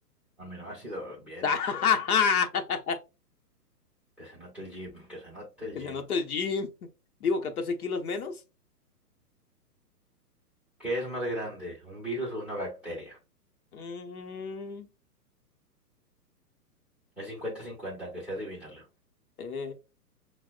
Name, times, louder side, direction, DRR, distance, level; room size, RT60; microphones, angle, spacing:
voice 1, 0.4-1.8 4.2-6.0 10.8-13.2 17.2-18.9, equal, 5° right, 0.6 m, -37 dB
voice 2, 1.4-3.0 5.7-6.7 7.2-8.4 13.7-14.9 19.4-19.7, left 6 dB, 60° left, 0.8 m, -29 dB
5.7 x 2.0 x 2.3 m
hypercardioid pair, 130°, 49 cm